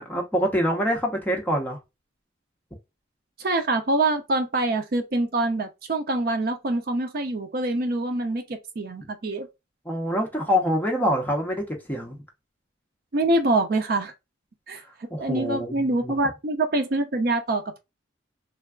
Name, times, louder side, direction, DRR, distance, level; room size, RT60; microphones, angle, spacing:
voice 1, 0.0-1.8 9.8-12.2 15.1-16.1, equal, 10° left, 0.7 m, -25 dB
voice 2, 3.4-9.5 13.1-14.1 14.7-14.8 15.2-17.8, right 2 dB, 50° right, 0.5 m, -25 dB
3.3 x 2.3 x 2.2 m
head